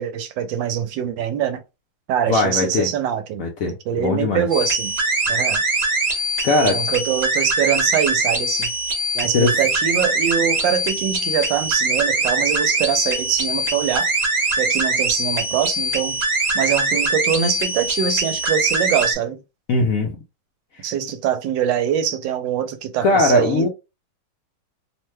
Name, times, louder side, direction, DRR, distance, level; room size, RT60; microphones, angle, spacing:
voice 1, 0.0-1.6 2.1-3.4 3.9-4.9 5.3-5.6 6.7-8.7 9.1-14.1 14.6-16.2 16.5-19.4 20.8-23.7, right 9 dB, 80° right, 1.2 m, -23 dB
voice 2, 2.3-2.9 3.4-4.5 6.4-6.9 9.3-9.5 19.7-20.1 20.8-20.9 23.0-23.7, left 2 dB, 70° left, 0.8 m, -19 dB
sound 1, 4.5-19.1, right 2 dB, 40° right, 0.6 m, -22 dB
3.0 x 2.2 x 3.1 m
omnidirectional pair, 2.0 m